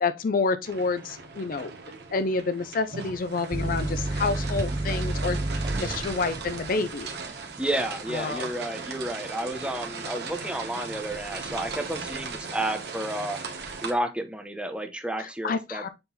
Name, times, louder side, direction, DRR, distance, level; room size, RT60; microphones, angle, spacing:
voice 1, 0.0-1.7 2.1-5.4 5.8-7.1 8.1-8.5 15.2-15.9, left 4 dB, 55° left, 0.5 m, -28 dB
sound 1, 0.6-13.9, right 4 dB, 65° right, 1.3 m, -38 dB
sound 2, 3.5-10.8 11.2-11.9, right 1 dB, 25° right, 0.4 m, -32 dB
voice 2, 7.6-13.4 13.8-15.9, right 1 dB, 5° right, 0.9 m, -31 dB
6.8 x 3.9 x 4.1 m
head